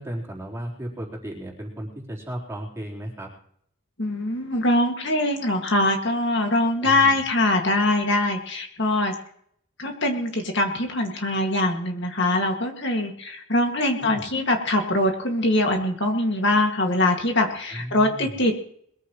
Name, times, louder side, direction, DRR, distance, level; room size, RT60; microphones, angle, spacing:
voice 1, 0.0-3.3 6.8-7.2 14.0-14.3 17.7-18.4, right 1 dB, 15° right, -3 dB, 3.9 m, -35 dB
voice 2, 4.0-9.1 9.8-18.6, left 1 dB, 55° left, 3 dB, 2.1 m, -23 dB
22.0 x 15.0 x 3.1 m, 0.65 s
head